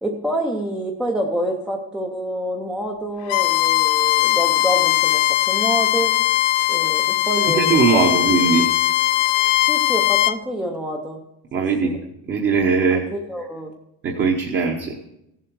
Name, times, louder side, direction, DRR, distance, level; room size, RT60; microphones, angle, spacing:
voice 1, 0.0-6.3 6.7-8.6 9.7-11.2 11.6-12.0 12.9-13.7, right 1 dB, ahead, 1 dB, 0.6 m, -27 dB
Bowed string instrument, 3.3-10.3, left 16 dB, 70° left, 0.5 m, -19 dB
voice 2, 7.5-8.7 11.5-12.0 12.3-13.0 14.0-14.9, right 5 dB, 30° right, 1 dB, 1.0 m, -19 dB
15.5 x 7.6 x 4.7 m, 0.85 s
cardioid pair, 175°, 39 cm